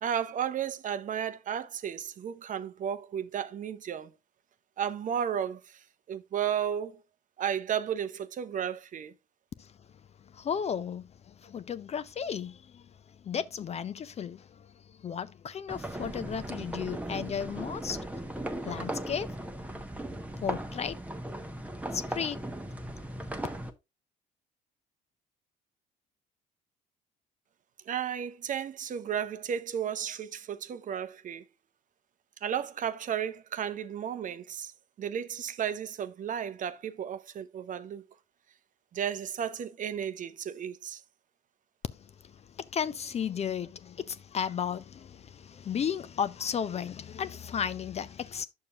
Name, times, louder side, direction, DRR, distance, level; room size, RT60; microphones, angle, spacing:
voice 1, 0.0-4.1 4.8-5.8 6.1-7.0 7.4-9.1 27.9-31.4 32.4-34.7 35.0-38.0 38.9-41.0, right 9 dB, 40° right, 0.6 m, -33 dB
voice 2, 10.3-11.1 11.4-12.8 13.2-14.4 15.0-18.0 18.6-19.3 20.4-21.0 21.9-22.4 42.6-48.5, left 7 dB, 30° left, 0.5 m, -34 dB
sound 1, 15.7-23.7, right 1 dB, 5° right, 0.9 m, -37 dB
9.9 x 6.8 x 2.4 m
figure-of-eight pair, 50°, 21 cm